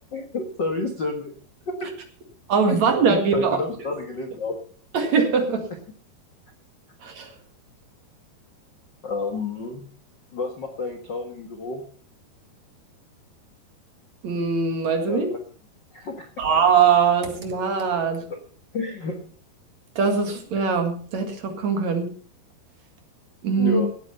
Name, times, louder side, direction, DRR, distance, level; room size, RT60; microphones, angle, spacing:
voice 1, 0.1-1.3 1.7-2.0 2.7-2.8 3.1-4.6 9.0-9.8 10.3-11.8 15.1-15.4 15.9-16.3 18.3-18.4 18.7-19.2 23.6-23.9, left 3 dB, 80° left, 4 dB, 0.9 m, -29 dB
voice 2, 2.5-3.6 4.9-5.7 7.0-7.3 14.2-15.3 16.4-18.3 20.0-22.1 23.4-23.8, right 5 dB, 50° right, 5 dB, 2.8 m, -21 dB
16.5 x 8.8 x 5.5 m, 0.44 s
omnidirectional pair, 4.6 m